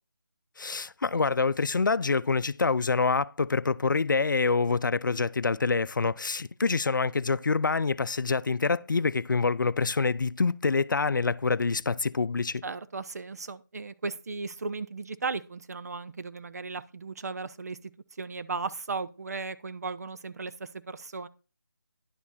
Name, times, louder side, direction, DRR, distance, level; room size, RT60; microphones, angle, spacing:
voice 1, 0.6-12.6, left 4 dB, 70° left, 0.6 m, -26 dB
voice 2, 12.6-17.8 18.2-21.3, right 4 dB, 50° right, 1.0 m, -36 dB
11.0 x 7.2 x 4.2 m
figure-of-eight pair, 165°, 11 cm